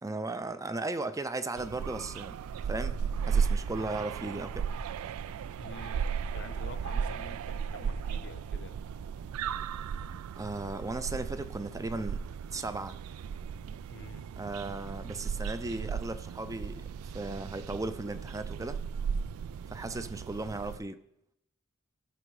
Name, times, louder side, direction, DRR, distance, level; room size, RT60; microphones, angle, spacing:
voice 1, 0.0-2.4 2.6-4.7 10.4-12.2 12.5-13.0 14.4-18.8 19.7-21.0, right 2 dB, 15° right, 0.5 m, -36 dB
sound 1, 1.6-20.8, right 6 dB, 80° right, 0.3 m, -35 dB
voice 2, 5.6-8.8 13.9-14.3, left 4 dB, 55° left, 0.7 m, -48 dB
16.0 x 5.4 x 4.8 m
head